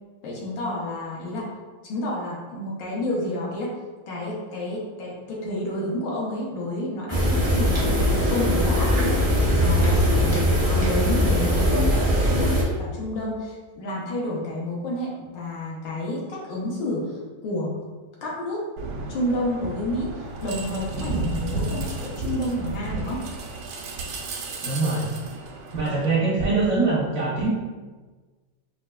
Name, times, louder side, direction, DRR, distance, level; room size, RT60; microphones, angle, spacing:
voice 1, 0.2-1.5 1.8-3.7 4.1-8.0 8.3-17.2 17.4-17.8 18.2-18.6 19.1-20.1 20.4-23.2, left 1 dB, 65° left, -5 dB, 1.5 m, -30 dB
sound 1, 7.1-12.6, equal, 45° right, 0.4 m, -21 dB
sound 2, 18.8-26.2, right 3 dB, 85° right, 1.4 m, -33 dB
voice 2, 24.6-25.1 25.7-27.5, right 3 dB, 70° right, -6 dB, 0.8 m, -23 dB
5.3 x 2.6 x 2.3 m, 1.3 s
omnidirectional pair, 2.3 m